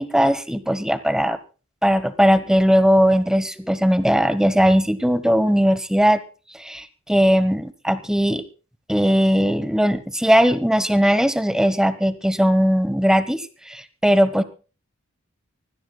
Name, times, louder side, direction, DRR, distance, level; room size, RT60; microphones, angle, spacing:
voice 1, 0.0-1.4 1.8-6.2 6.6-8.4 8.9-14.4, equal, 5° right, 12 dB, 1.1 m, -19 dB
24.5 x 17.0 x 2.3 m, 0.34 s
head